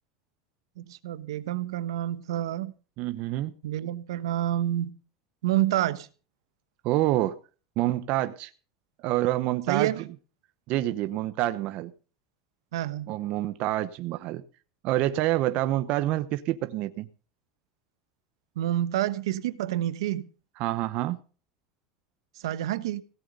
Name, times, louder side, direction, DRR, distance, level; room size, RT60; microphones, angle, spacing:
voice 1, 0.8-2.7 3.6-4.9 5.4-6.1 9.7-10.1 12.7-13.1 18.6-20.3 22.4-23.0, right 13 dB, 85° right, 1.2 m, -28 dB
voice 2, 3.0-3.5 6.8-7.4 7.8-8.5 9.0-9.9 10.7-11.9 13.1-14.4 14.8-17.1 20.6-21.2, right 15 dB, 60° right, 0.9 m, -27 dB
17.0 x 7.8 x 6.7 m
hypercardioid pair, 100°, 3 cm